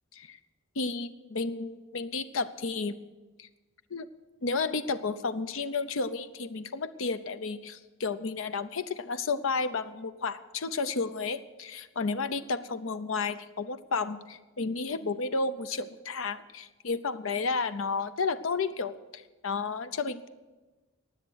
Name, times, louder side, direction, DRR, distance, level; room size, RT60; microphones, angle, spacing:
voice 1, 0.8-2.9 3.4-3.5 3.9-4.1 4.4-20.3, left 4 dB, 75° left, 12 dB, 0.7 m, -32 dB
16.0 x 10.0 x 6.3 m, 1.2 s
head